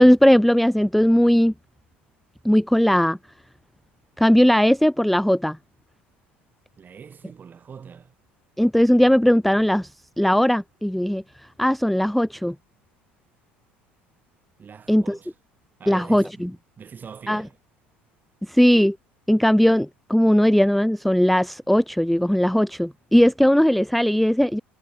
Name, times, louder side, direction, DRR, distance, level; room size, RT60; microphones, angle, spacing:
voice 1, 0.0-1.5 2.4-3.2 4.2-5.6 8.6-9.9 10.2-11.2 11.6-12.5 14.9-15.2 15.9-16.5 17.3-17.4 18.5-19.0 19.3-24.6, equal, ahead, 0.5 m, -18 dB
voice 2, 6.8-8.1 14.6-15.3 15.8-17.6, right 6 dB, 30° right, 4.4 m, -43 dB
figure-of-eight pair, 65°, 6 cm